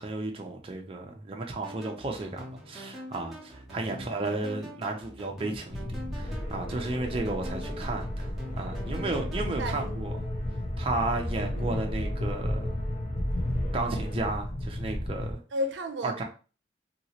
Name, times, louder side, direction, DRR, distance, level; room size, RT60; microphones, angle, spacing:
voice 1, 0.0-8.3 8.6-10.1 10.8-12.8 13.7-15.4 16.0-16.2, right 2 dB, 30° right, 0.5 m, -33 dB
sound 1, 1.6-9.9, equal, ahead, 0.8 m, -44 dB
voice 2, 3.8-4.7 9.4-10.0 11.4-11.7 15.5-16.2, equal, 85° right, 0.5 m, -36 dB
sound 2, 5.7-15.3, left 1 dB, 75° left, 0.9 m, -33 dB
sound 3, 6.2-14.1, left 1 dB, 40° left, 0.7 m, -45 dB
2.9 x 2.8 x 2.8 m
head